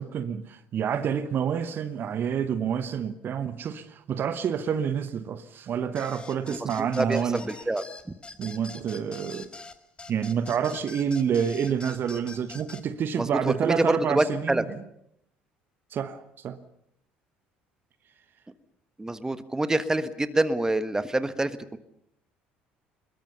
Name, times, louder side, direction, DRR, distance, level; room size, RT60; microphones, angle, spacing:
voice 1, 0.0-7.5 8.4-9.5 10.1-14.7 15.9-16.6, right 7 dB, 45° right, 1.1 m, -28 dB
sound 1, 5.9-12.8, left 3 dB, 20° left, 1.8 m, -44 dB
voice 2, 6.5-7.8 13.2-14.6 19.0-21.8, right 2 dB, 10° right, 1.4 m, -26 dB
23.5 x 21.0 x 6.9 m
figure-of-eight pair, 55°, 5 cm